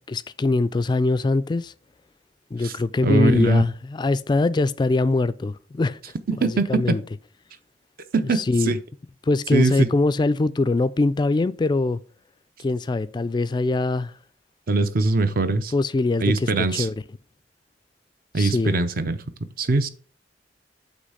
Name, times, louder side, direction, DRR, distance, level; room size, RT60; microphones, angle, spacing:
voice 1, 0.1-1.7 2.5-6.0 6.3-7.0 8.3-8.8 9.2-12.0 12.6-14.1 15.7-16.9 18.4-18.7, left 3 dB, 25° left, 0.3 m, -23 dB
voice 2, 3.0-3.6 6.3-7.0 8.1-8.8 9.5-9.9 14.7-15.7 16.2-16.9 18.3-19.2 19.6-19.9, right 3 dB, 50° right, 0.6 m, -22 dB
8.3 x 3.1 x 5.5 m
head